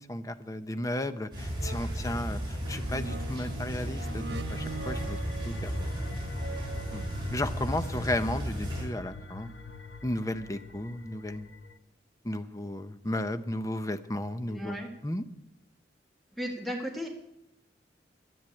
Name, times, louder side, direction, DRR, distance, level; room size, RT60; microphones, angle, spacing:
voice 1, 0.0-5.2 5.4-5.9 6.9-9.5 10.0-11.5 12.2-14.7 15.0-15.2, left 1 dB, 20° left, 10 dB, 0.7 m, -34 dB
sound 1, 1.1-1.3 1.6-7.5 8.1-8.2, right 3 dB, 70° right, 1.5 m, -42 dB
sound 2, 1.3-8.8, equal, 25° right, 6.0 m, -34 dB
sound 3, 4.5-11.8, left 3 dB, 80° left, 1.1 m, -46 dB
voice 2, 14.5-14.9 16.3-17.1, equal, ahead, 1 dB, 1.6 m, -35 dB
11.5 x 10.5 x 8.5 m, 0.83 s
head